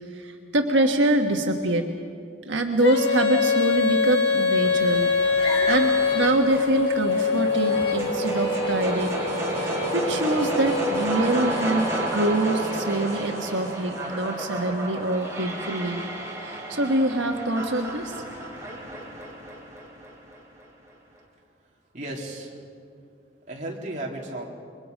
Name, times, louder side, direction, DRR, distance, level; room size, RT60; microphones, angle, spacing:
voice 1, 0.1-1.9 2.4-9.2 9.5-16.0 16.4-18.1, right 2 dB, 85° right, 3 dB, 1.4 m, -25 dB
Female singing, 2.8-11.6, left 4 dB, 60° left, 1.9 m, -24 dB
sound 1, 4.6-20.7, right 1 dB, 15° right, 3.8 m, -32 dB
sound 2, 5.4-11.3, left 2 dB, 30° left, 3.0 m, -38 dB
voice 2, 21.9-22.5 23.5-24.5, right 1 dB, 40° right, -2 dB, 3.0 m, -34 dB
28.0 x 23.0 x 5.3 m, 2.3 s
head